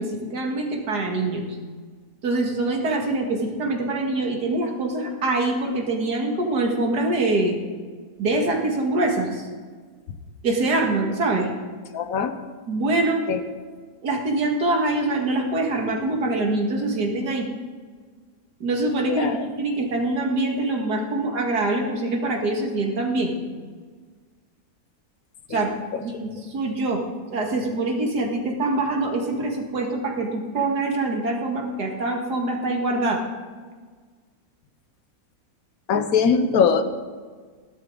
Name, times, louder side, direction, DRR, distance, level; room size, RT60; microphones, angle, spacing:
voice 1, 0.0-1.5 2.2-7.6 8.2-9.5 10.4-11.5 12.7-13.2 14.0-17.5 18.6-23.3 25.5-25.7 26.0-27.0 27.3-33.2, right 2 dB, 85° right, 1 dB, 2.4 m, -24 dB
voice 2, 11.9-12.3 13.3-13.4 19.1-19.5 25.5-25.6 25.9-26.0 35.9-36.8, left 6 dB, 65° left, 9 dB, 1.3 m, -21 dB
16.0 x 12.0 x 3.9 m, 1.5 s
omnidirectional pair, 1.7 m